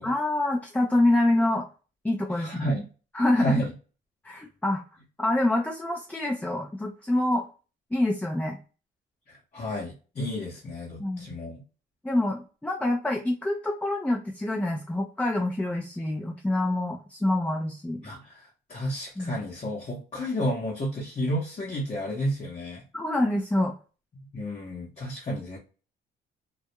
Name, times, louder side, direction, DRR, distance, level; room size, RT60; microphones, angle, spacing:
voice 1, 0.0-1.7 2.0-2.8 3.1-3.6 4.2-4.8 5.2-7.5 7.9-8.6 11.0-11.3 12.0-18.0 19.2-19.4 22.9-23.7, left 1 dB, 5° left, 0 dB, 0.4 m, -26 dB
voice 2, 2.4-2.8 3.3-3.7 9.3-11.6 18.0-22.8 24.3-25.6, equal, 35° left, -3 dB, 0.8 m, -31 dB
2.3 x 2.0 x 2.8 m, 0.35 s
cardioid pair, 90°, 20 cm